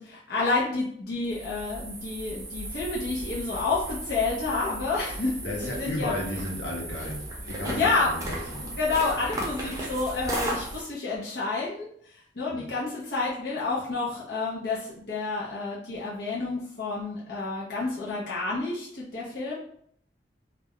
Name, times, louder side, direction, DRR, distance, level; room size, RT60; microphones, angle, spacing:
voice 1, 0.0-6.1 7.6-8.1 8.6-19.6, left 3 dB, 60° left, -6 dB, 0.6 m, -29 dB
sound 1, 1.3-10.8, right 1 dB, 20° right, 0.6 m, -36 dB
voice 2, 5.4-8.7 12.5-12.7, left 1 dB, 90° left, -2 dB, 0.9 m, -34 dB
2.3 x 2.1 x 3.6 m, 0.65 s
head